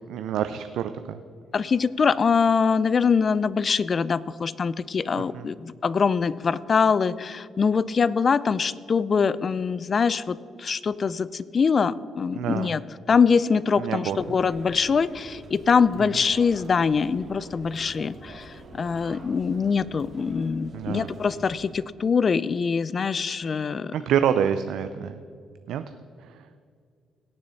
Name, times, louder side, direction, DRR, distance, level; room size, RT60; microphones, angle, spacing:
voice 1, 0.1-1.2 5.1-5.4 12.3-12.7 13.8-14.2 20.7-21.1 23.9-25.2 25.7-25.9 26.2-26.5, right 9 dB, 80° right, 10 dB, 0.4 m, -27 dB
voice 2, 1.5-12.8 13.1-23.9, left 5 dB, 40° left, 19 dB, 0.4 m, -23 dB
sound 1, 14.0-21.7, right 2 dB, 55° right, 1.9 m, -45 dB
17.5 x 6.9 x 4.1 m, 2.3 s
cardioid pair, 90°, 0 cm